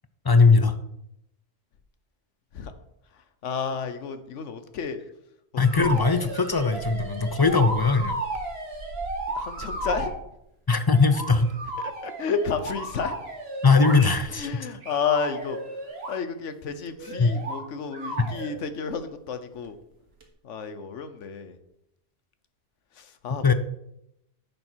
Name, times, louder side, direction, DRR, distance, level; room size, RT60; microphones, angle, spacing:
voice 1, 0.2-0.8 5.6-8.2 10.7-11.5 13.6-14.5 17.2-17.3 23.4-23.5, left 4 dB, 35° left, 10 dB, 0.3 m, -20 dB
voice 2, 3.4-5.0 5.7-5.9 9.3-10.1 11.8-13.2 14.3-15.6 16.1-19.8 20.4-21.6 22.9-23.5, left 6 dB, 85° left, 10 dB, 1.2 m, -31 dB
sound 1, 5.6-10.2 10.9-14.4 14.8-16.2 17.0-17.6 17.9-18.5 20.2-20.3, right 2 dB, 60° right, 1.8 m, -34 dB
10.0 x 6.7 x 4.5 m, 0.80 s
omnidirectional pair, 1.2 m